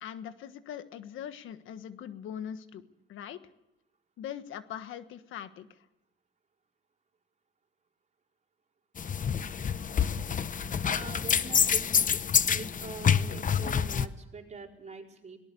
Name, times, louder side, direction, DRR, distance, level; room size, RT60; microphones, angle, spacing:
voice 1, 0.0-3.4 4.2-5.9, left 9 dB, 80° left, 11 dB, 1.4 m, -41 dB
sound 1, 9.0-14.1, left 7 dB, 40° left, 0.9 m, -27 dB
voice 2, 10.6-15.4, right 4 dB, 35° right, 1 dB, 4.7 m, -44 dB
23.0 x 18.5 x 7.0 m, 0.87 s
cardioid pair, 90°, 20 cm